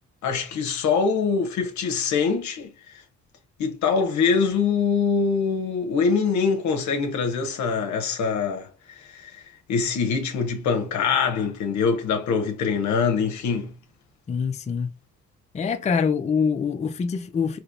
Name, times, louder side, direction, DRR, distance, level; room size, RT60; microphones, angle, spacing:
voice 1, 0.2-3.0 3.6-8.7 9.0-9.4 9.7-13.7, left 5 dB, 70° left, 0.7 m, -24 dB
voice 2, 14.3-14.9 15.5-17.6, left 6 dB, 25° left, 0.4 m, -24 dB
3.3 x 2.9 x 2.5 m
cardioid pair, 90°, 30 cm